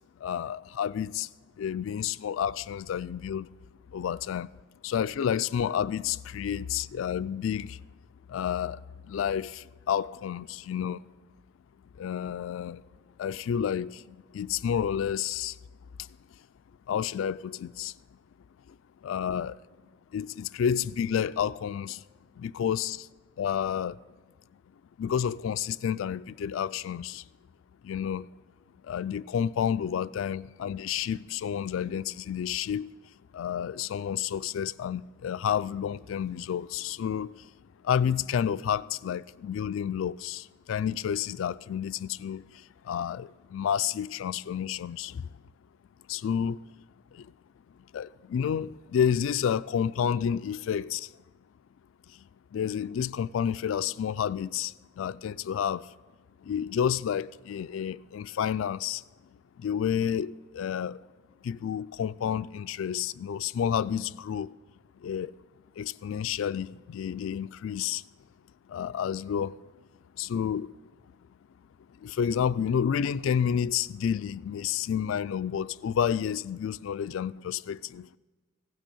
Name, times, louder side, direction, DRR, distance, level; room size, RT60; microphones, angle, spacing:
voice 1, 0.2-1.3 1.6-3.5 3.9-4.5 4.8-7.8 8.3-8.8 9.1-11.0 12.0-12.8 13.2-15.5 16.9-17.9 19.0-19.6 20.1-22.0 22.4-23.1 23.4-24.0 25.0-27.2 27.8-28.3 28.9-32.9 33.3-37.3 37.8-42.4 42.9-45.2 46.1-46.6 47.9-51.1 52.5-55.9 56.5-59.0 59.6-61.0 61.4-64.5 65.0-65.3 65.8-68.0 68.7-69.5 70.2-70.7 72.0-78.1, left 8 dB, 75° left, 0.3 m, -30 dB
16.0 x 6.3 x 8.4 m
head